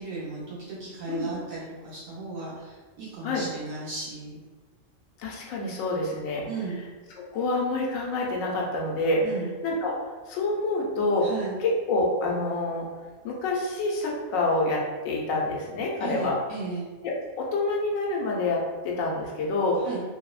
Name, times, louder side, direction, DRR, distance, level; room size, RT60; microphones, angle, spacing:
voice 1, 0.0-4.4 6.5-6.8 9.2-9.5 11.2-11.6 16.0-16.9 19.8-20.0, right 3 dB, 85° right, -10 dB, 1.2 m, -35 dB
voice 2, 5.2-6.5 7.3-9.2 9.6-9.9 10.3-11.3 11.6-12.8 13.2-16.3 17.0-19.8, left 2 dB, 85° left, -2 dB, 1.0 m, -27 dB
3.1 x 2.0 x 2.3 m, 1.3 s
omnidirectional pair, 1.3 m